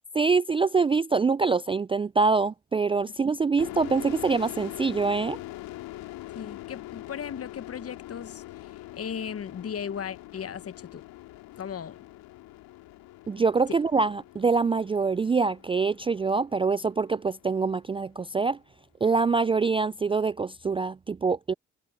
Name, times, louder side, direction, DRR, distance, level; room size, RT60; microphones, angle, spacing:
voice 1, 0.1-5.4 13.3-18.6 19.0-21.5, right 4 dB, 15° right, 0.4 m, -25 dB
sound 1, 3.6-17.0, left 16 dB, 75° left, 3.1 m, -43 dB
voice 2, 6.3-11.0 11.6-12.0, left 8 dB, 40° left, 1.1 m, -37 dB
hypercardioid pair, 50°, 35 cm